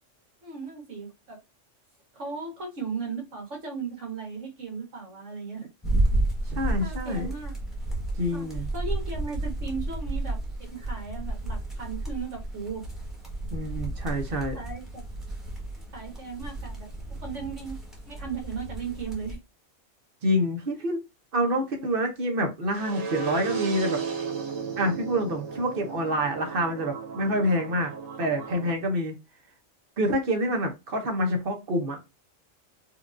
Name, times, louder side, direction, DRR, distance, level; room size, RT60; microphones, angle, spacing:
voice 1, 0.4-1.4 2.1-5.7 6.8-7.5 8.3-8.5 8.7-12.8 14.3-15.0 15.9-16.9 17.2-17.8 18.0-19.4, right 5 dB, 70° right, 1.6 m, -36 dB
sound 1, 5.8-19.4, right 1 dB, ahead, 1.1 m, -32 dB
voice 2, 6.5-7.3 8.2-8.7 13.5-14.6 20.2-21.0 21.3-24.0 24.8-27.9 28.2-29.1 30.0-32.0, equal, 50° right, 1.0 m, -27 dB
sound 2, 22.7-28.7, right 5 dB, 90° right, 1.3 m, -34 dB
4.4 x 2.4 x 2.5 m
omnidirectional pair, 1.3 m